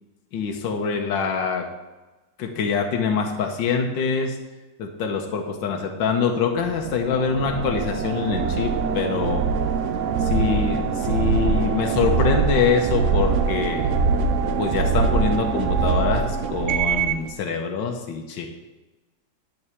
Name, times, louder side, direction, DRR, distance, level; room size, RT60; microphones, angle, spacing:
voice 1, 0.3-1.7 2.4-4.4 4.8-9.5 10.2-13.9 14.6-18.5, left 5 dB, 80° left, 3 dB, 1.6 m, -24 dB
sound 1, 6.7-17.3, right 5 dB, 65° right, 0.7 m, -23 dB
11.0 x 4.7 x 6.9 m, 1.1 s
omnidirectional pair, 2.0 m